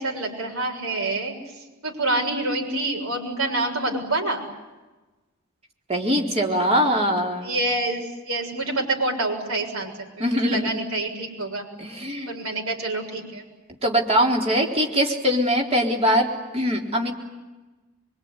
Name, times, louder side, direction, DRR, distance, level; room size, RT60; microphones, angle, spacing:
voice 1, 0.0-1.3 1.8-4.4 7.4-11.6 12.3-13.5, right 2 dB, 85° right, 1 dB, 6.7 m, -27 dB
voice 2, 5.9-7.5 10.2-10.7 11.8-12.3 13.8-17.1, equal, 30° right, 1 dB, 4.1 m, -22 dB
24.5 x 23.5 x 9.9 m, 1.2 s
head